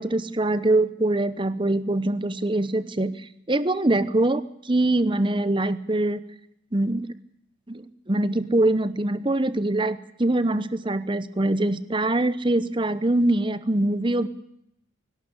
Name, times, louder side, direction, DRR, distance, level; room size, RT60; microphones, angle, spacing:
voice 1, 0.0-3.1 3.5-6.2 6.7-7.1 7.7-14.3, right 2 dB, 25° right, 14 dB, 0.9 m, -23 dB
23.0 x 12.0 x 10.0 m, 0.77 s
head